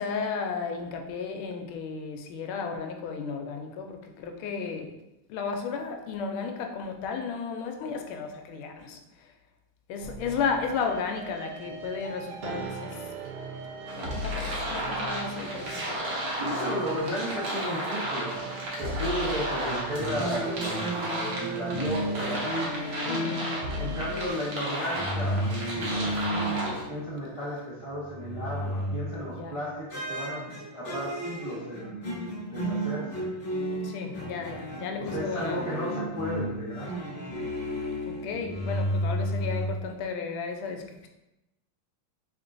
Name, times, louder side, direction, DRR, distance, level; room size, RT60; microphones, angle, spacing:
voice 1, 0.0-4.9 5.3-9.3 9.9-13.1 14.0-16.0 23.1-23.5 29.3-29.6 33.8-35.6 38.1-41.1, left 5 dB, 85° left, 4 dB, 1.4 m, -34 dB
sound 1, 10.0-24.3, right 1 dB, 85° right, 1.4 m, -39 dB
sound 2, 13.9-26.8, right 1 dB, 55° right, 1.2 m, -34 dB
voice 2, 16.4-18.4 18.8-22.5 23.8-25.4 25.7-32.2 32.5-33.3 35.0-36.9, equal, 40° right, -9 dB, 0.4 m, -34 dB
sound 3, 19.9-27.5 27.8-29.3 29.9-39.7, equal, 35° left, 0.9 m, -33 dB
3.7 x 3.5 x 2.5 m, 0.93 s
omnidirectional pair, 2.3 m